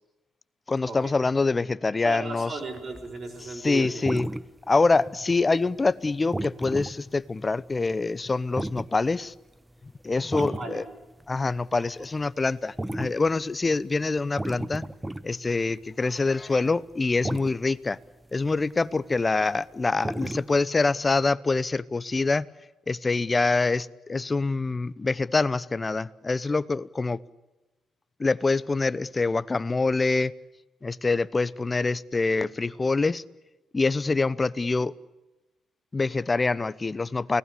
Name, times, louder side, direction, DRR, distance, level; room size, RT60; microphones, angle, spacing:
voice 1, 0.7-2.5 3.6-4.3 4.7-9.3 10.0-10.8 11.3-14.8 15.2-18.0 18.3-22.5 22.9-27.2 28.2-30.3 30.8-33.2 33.7-34.9 35.9-37.4, left 3 dB, 25° left, 0.9 m, -25 dB
voice 2, 2.0-4.2 10.3-10.8 11.8-11.9, right 3 dB, 40° right, 6.6 m, -36 dB
sound 1, 2.7-3.5 3.8-5.2 5.5-5.9 6.3-8.0 8.4-9.3 10.1-10.7 11.2-11.3 11.6-16.2 16.5-16.9 17.2-17.6 18.5-18.8 19.2-19.5 20.0-20.5, right 1 dB, 10° right, 1.0 m, -34 dB
29.5 x 18.5 x 8.4 m
cardioid pair, 90°, 0 cm